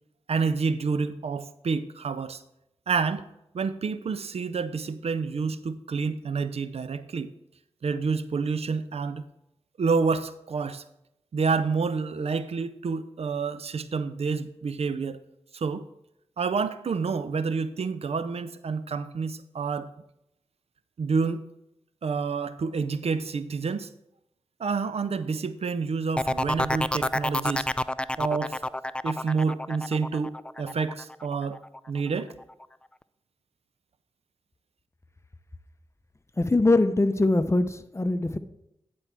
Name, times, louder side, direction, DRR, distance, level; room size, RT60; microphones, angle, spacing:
voice 1, 0.3-2.4 2.9-3.3 3.5-7.3 7.8-9.2 9.8-10.8 11.3-15.2 15.5-15.9 16.4-19.9 21.0-21.4 22.0-23.9 24.6-27.7 28.2-28.6 29.0-31.6 31.9-32.3, right 5 dB, 65° right, 0.5 m, -28 dB
sound 1, 26.2-31.8 32.2-32.6, left 1 dB, 10° left, 0.3 m, -29 dB
voice 2, 36.4-38.4, left 2 dB, 25° left, 0.8 m, -22 dB
9.9 x 4.5 x 6.0 m
cardioid pair, 40°, 11 cm